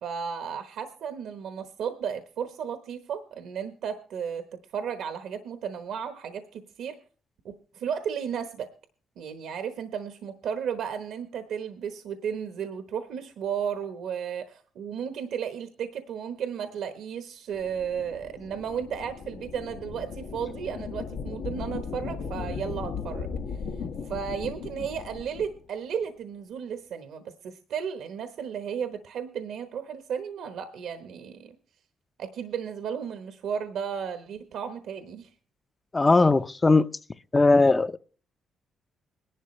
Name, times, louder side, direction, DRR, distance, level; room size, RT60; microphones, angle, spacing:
voice 1, 0.0-7.0 7.4-8.7 9.2-23.3 24.0-31.6 32.2-35.3, right 7 dB, 75° right, 1.0 m, -34 dB
sound 1, 17.5-25.6, left 5 dB, 80° left, 1.4 m, -37 dB
voice 2, 35.9-36.9 37.3-38.0, left 3 dB, 25° left, 0.5 m, -19 dB
21.0 x 11.0 x 3.1 m
cardioid pair, 90°, 0 cm